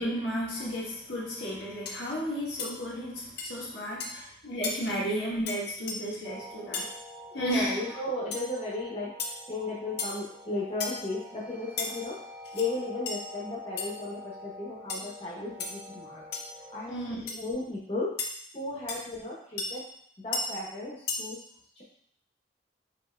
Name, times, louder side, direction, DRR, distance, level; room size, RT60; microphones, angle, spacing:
voice 1, 0.0-6.9 7.3-7.7 16.9-17.4, equal, 90° left, -6 dB, 1.3 m, -33 dB
sound 1, 1.3-1.5 1.9-2.0 2.6-2.7 3.4-3.5 4.0-4.2 4.6-4.8 5.5-5.6 5.9-6.0 6.7-6.9 8.3-8.4 9.2-9.4 10.0-10.2 10.8-11.0 11.8-11.9 12.4-12.7 13.1-13.2 13.8-13.9 14.9-15.1 15.6-15.7 16.3-16.5 17.3-17.4 18.2-18.3 18.9-19.0 19.6-19.7 20.3-20.4 21.1-21.2, left 4 dB, 65° left, 0.5 m, -33 dB
sound 2, 6.2-17.1, equal, 15° right, 0.3 m, -47 dB
voice 2, 7.4-9.1 9.5-12.2 12.5-16.2 16.7-19.8 20.2-21.4 21.8-21.9, left 2 dB, 30° left, -5 dB, 0.8 m, -35 dB
5.5 x 2.6 x 2.2 m, 0.64 s
head